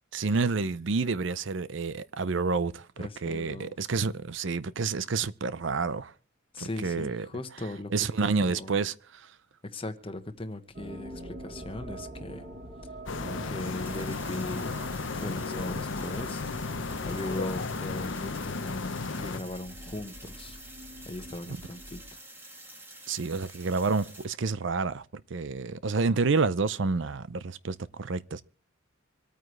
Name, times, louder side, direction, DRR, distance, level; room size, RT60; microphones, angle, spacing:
voice 1, 0.1-6.1 6.6-7.3 7.5-9.3 21.5-21.6 23.1-28.4, right 4 dB, 60° right, 0.6 m, -29 dB
voice 2, 3.0-3.7 6.5-7.9 8.2-8.8 9.6-12.5 13.2-14.8 15.1-16.7 17.0-20.6 21.0-22.2, left 1 dB, 25° left, 1.1 m, -39 dB
sound 1, 10.7-22.1, right 1 dB, 40° right, 4.0 m, -45 dB
sound 2, 13.1-19.4, left 4 dB, 60° left, 0.8 m, -34 dB
sound 3, 13.4-24.2, right 1 dB, 10° right, 1.9 m, -49 dB
26.0 x 9.2 x 3.2 m
head